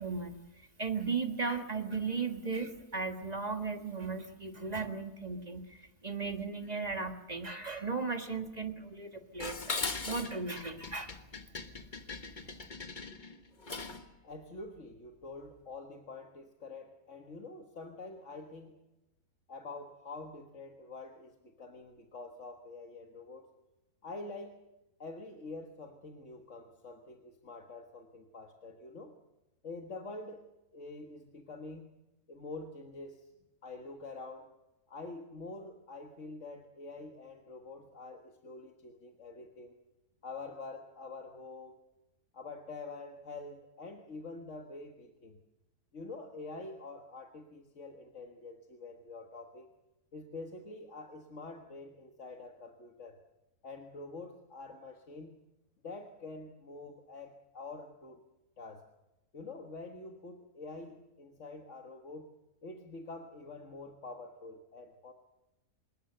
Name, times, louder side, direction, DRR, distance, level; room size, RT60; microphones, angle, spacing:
voice 1, 0.0-11.2, right 4 dB, 25° right, 6 dB, 1.6 m, -36 dB
Dishes pots and pans, 9.4-14.1, left 3 dB, 30° left, 1.5 m, -40 dB
voice 2, 14.2-18.7 19.5-23.5 24.0-24.6 25.0-29.1 29.6-30.4 30.7-31.9 32.3-33.3 33.6-34.5 34.9-39.8 40.2-41.8 42.3-45.4 45.9-49.7 50.1-53.2 53.6-55.3 55.8-58.2 58.6-58.9 59.3-62.3 62.6-65.1, left 3 dB, 50° left, 3 dB, 1.9 m, -46 dB
26.0 x 21.0 x 6.8 m, 0.96 s
omnidirectional pair, 1.6 m